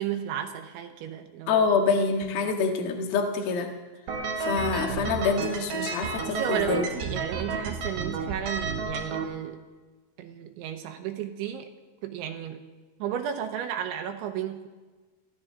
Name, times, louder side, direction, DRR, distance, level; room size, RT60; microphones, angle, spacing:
voice 1, 0.0-1.6 2.4-2.5 6.2-9.6 10.2-11.7 12.0-12.6 13.0-14.7, right 9 dB, 80° right, 5 dB, 3.2 m, -33 dB
voice 2, 1.5-3.7 4.4-6.9, left 5 dB, 60° left, 3 dB, 3.1 m, -26 dB
sound 1, 4.1-9.2, right 4 dB, 60° right, 3.2 m, -31 dB
23.5 x 15.5 x 3.8 m, 1.3 s
omnidirectional pair, 5.6 m